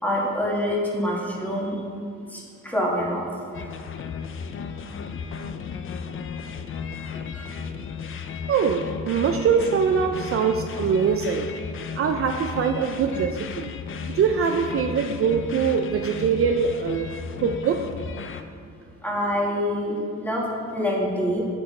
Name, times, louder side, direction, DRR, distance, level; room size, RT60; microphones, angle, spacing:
voice 1, 0.0-1.8 2.3-3.2 3.5-3.7 7.1-7.6 19.0-20.5 20.7-21.5, equal, 5° left, -3 dB, 1.7 m, -26 dB
sound 1, 3.5-18.4, left 6 dB, 45° left, 0.5 m, -34 dB
voice 2, 8.5-11.5 11.9-13.7 14.1-17.1 17.4-17.8, right 6 dB, 50° right, 4 dB, 0.5 m, -23 dB
9.0 x 6.2 x 3.2 m, 2.2 s
cardioid pair, 90°, 30 cm